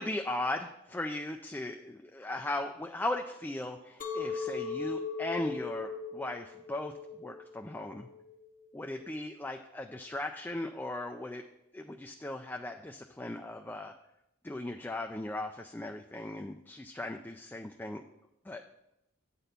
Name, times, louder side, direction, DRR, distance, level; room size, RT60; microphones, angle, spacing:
voice 1, 0.0-6.9 7.2-8.1 8.7-11.4 11.7-13.9 14.4-18.0 18.4-18.6, left 1 dB, 10° left, 4 dB, 0.3 m, -37 dB
Chink clink, 4.0-9.2, left 5 dB, 40° left, 0.9 m, -39 dB
8.9 x 4.2 x 6.7 m, 0.84 s
head